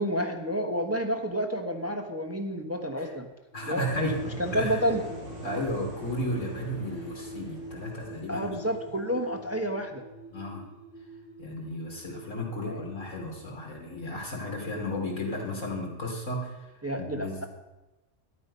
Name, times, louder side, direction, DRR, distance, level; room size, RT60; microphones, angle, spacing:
voice 1, 0.0-3.3 3.7-5.0 8.3-10.0 12.6-12.8 16.8-17.4, equal, 15° right, 3 dB, 1.0 m, -30 dB
voice 2, 3.5-4.2 4.5-4.8 5.4-8.5 10.3-10.7 11.4-16.7 17.0-17.3, left 1 dB, 80° left, -1 dB, 3.4 m, -33 dB
sound 1, 3.5-14.3 14.6-14.7, right 1 dB, 40° left, 2.1 m, -46 dB
sound 2, 3.8-9.7, right 1 dB, 45° right, 6.3 m, -42 dB
13.0 x 11.0 x 5.5 m, 1.1 s
omnidirectional pair, 1.3 m